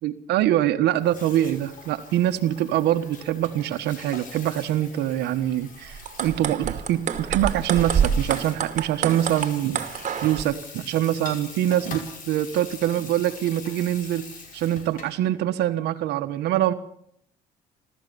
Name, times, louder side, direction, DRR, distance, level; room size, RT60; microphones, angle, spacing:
voice 1, 0.0-14.3 14.5-16.7, right 12 dB, 80° right, 10 dB, 1.4 m, -24 dB
Water tap faucet / Sink (filling or washing), 0.9-15.2, left 4 dB, 50° left, 5.5 m, -43 dB
sound 1, 5.9-10.4, right 7 dB, 45° right, 2.5 m, -27 dB
28.5 x 13.5 x 7.0 m, 0.71 s
cardioid pair, 110°, 17 cm